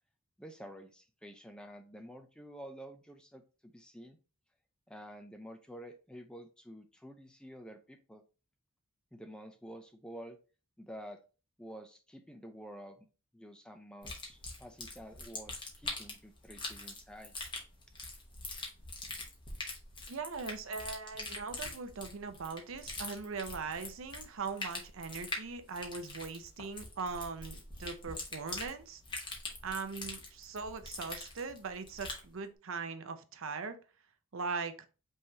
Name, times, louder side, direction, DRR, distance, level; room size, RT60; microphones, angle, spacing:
voice 1, 0.4-4.2 4.9-8.2 9.1-10.4 10.8-11.2 11.6-13.1 13.3-17.3, equal, 5° left, 6 dB, 0.4 m, -50 dB
sound 1, 14.0-32.3, left 3 dB, 20° left, 1.0 m, -43 dB
voice 2, 20.1-29.0 29.6-33.8 34.3-34.7, right 4 dB, 65° right, 9 dB, 0.6 m, -40 dB
5.4 x 3.2 x 2.8 m, 0.34 s
head